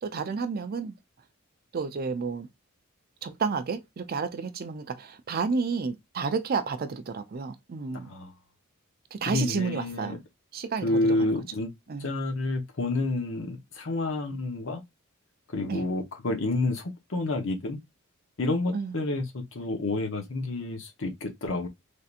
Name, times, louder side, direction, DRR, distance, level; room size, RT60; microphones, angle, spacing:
voice 1, 0.0-0.9 1.7-2.5 3.2-8.1 9.1-10.2 10.5-11.4 11.9-12.1 15.7-15.8 18.7-19.0, right 5 dB, 40° right, 0.4 m, -31 dB
voice 2, 7.9-8.3 9.3-10.2 10.8-11.7 12.0-14.8 15.5-17.8 18.4-21.7, left 2 dB, 60° left, 0.8 m, -29 dB
3.3 x 2.7 x 2.4 m
head